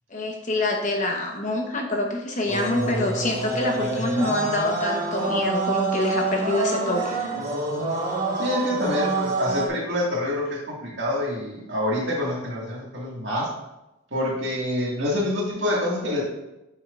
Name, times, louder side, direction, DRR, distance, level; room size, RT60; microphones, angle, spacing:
voice 1, 0.1-7.2, left 2 dB, 35° left, 2 dB, 1.0 m, -26 dB
sound 1, 2.5-9.7, right 2 dB, 40° right, 1.3 m, -27 dB
voice 2, 8.4-13.5 14.1-16.2, left 1 dB, 60° right, -4 dB, 2.0 m, -26 dB
7.2 x 5.8 x 2.5 m, 0.95 s
head